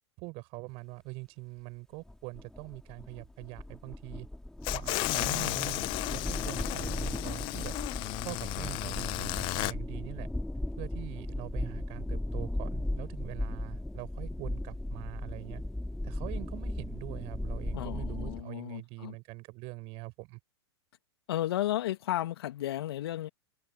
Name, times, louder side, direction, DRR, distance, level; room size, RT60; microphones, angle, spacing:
voice 1, 0.2-4.3 4.7-7.7 8.2-10.3 10.8-15.6 16.0-20.4, right 26 dB, 45° right, 5.0 m, -43 dB
sound 1, 2.1-18.4, left 1 dB, 5° left, 4.2 m, -37 dB
sound 2, 4.6-9.7, left 24 dB, 35° left, 0.4 m, -33 dB
voice 2, 17.7-19.2 21.3-23.3, left 13 dB, 65° left, 2.4 m, -33 dB
hypercardioid pair, 100°, 14 cm